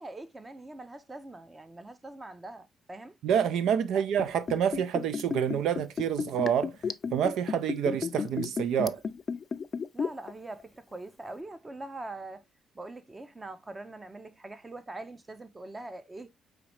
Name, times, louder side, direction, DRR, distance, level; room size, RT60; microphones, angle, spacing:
voice 1, 0.0-3.1 9.9-12.4 12.7-16.3, right 2 dB, 20° right, 0.7 m, -43 dB
voice 2, 3.2-6.7 7.1-9.0, right 8 dB, 80° right, 0.4 m, -27 dB
Liquid, 4.1-10.3 10.6-10.7, left 6 dB, 45° left, 0.3 m, -33 dB
4.7 x 3.1 x 3.0 m
cardioid pair, 90°, 0 cm